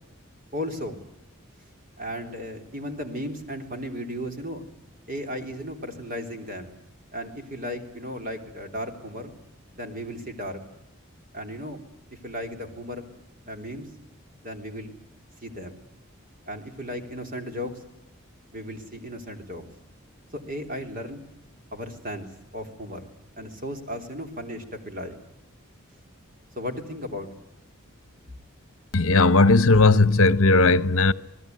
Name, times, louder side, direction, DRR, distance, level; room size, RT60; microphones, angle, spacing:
voice 1, 0.5-1.0 2.0-4.6 5.1-6.8 7.1-9.3 9.8-10.6 11.3-11.8 12.1-13.0 13.5-13.9 14.4-14.9 15.4-15.8 16.5-17.7 18.5-19.6 20.5-21.2 21.7-22.3 22.5-23.1 23.4-25.2 26.6-27.3, equal, 40° right, 3.5 m, -35 dB
voice 2, 28.9-31.1, left 3 dB, 75° left, 1.0 m, -17 dB
27.5 x 19.5 x 9.5 m
head